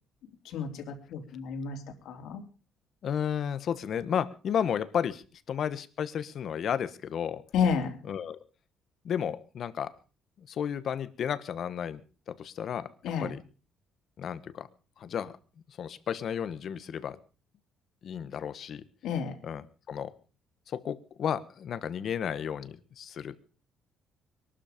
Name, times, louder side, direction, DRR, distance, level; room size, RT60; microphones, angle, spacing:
voice 1, 0.4-2.4 7.5-8.0 13.0-13.3 19.0-19.3, left 6 dB, 70° left, 5 dB, 3.4 m, -31 dB
voice 2, 3.0-7.4 8.1-8.4 9.0-9.9 10.4-12.0 12.3-12.9 13.2-13.4 14.2-14.7 15.0-15.3 15.7-17.2 18.0-18.8 19.4-20.1 20.7-23.4, left 8 dB, 45° left, 14 dB, 1.2 m, -33 dB
22.5 x 12.5 x 5.1 m, 0.38 s
cardioid pair, 165°, 0 cm